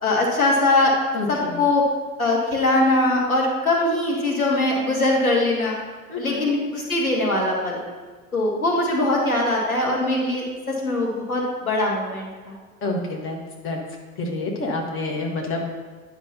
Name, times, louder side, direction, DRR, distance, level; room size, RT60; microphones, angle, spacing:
voice 1, 0.0-0.9 1.3-1.8 2.2-5.7 6.2-7.8 8.3-12.5, left 2 dB, 85° left, -2 dB, 1.5 m, -21 dB
voice 2, 1.1-1.6 6.1-6.5 12.8-13.4 13.6-13.8 14.2-15.7, left 2 dB, 30° left, 0 dB, 1.5 m, -28 dB
9.9 x 6.0 x 2.8 m, 1.5 s
figure-of-eight pair, 80°, 42 cm